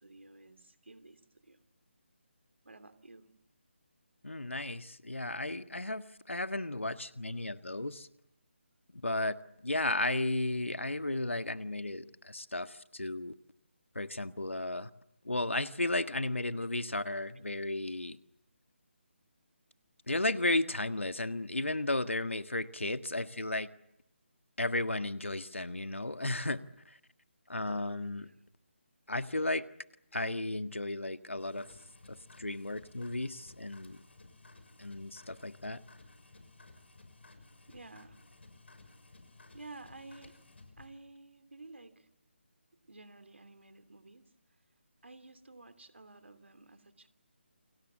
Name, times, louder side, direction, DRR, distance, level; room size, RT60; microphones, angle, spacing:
voice 1, 0.0-1.6 2.6-3.3 16.2-16.3 17.0-17.1 27.7-28.3 37.7-38.1 39.5-40.4 40.8-42.1 42.9-44.3 45.0-47.1, right 3 dB, 75° right, 10 dB, 3.0 m, -52 dB
voice 2, 4.2-8.1 8.9-13.3 13.9-14.9 15.2-18.2 20.1-23.7 24.6-26.6 26.8-27.0 27.5-28.3 29.1-29.7 30.1-31.7 32.1-34.0 34.8-35.8, left 2 dB, 85° left, 10 dB, 1.6 m, -34 dB
sound 1, 31.3-40.9, left 3 dB, 65° left, 6.4 m, -57 dB
29.0 x 25.0 x 7.4 m, 0.83 s
figure-of-eight pair, 155°, 7 cm